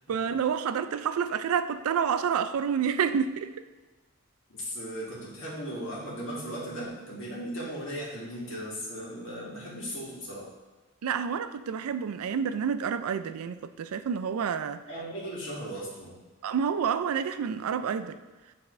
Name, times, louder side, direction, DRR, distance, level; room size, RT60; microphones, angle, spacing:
voice 1, 0.1-3.5 11.0-14.8 16.4-18.2, right 7 dB, 85° right, 12 dB, 0.4 m, -29 dB
voice 2, 4.5-10.5 14.9-16.2, equal, 60° left, -6 dB, 1.9 m, -37 dB
8.9 x 3.5 x 3.1 m, 1.3 s
head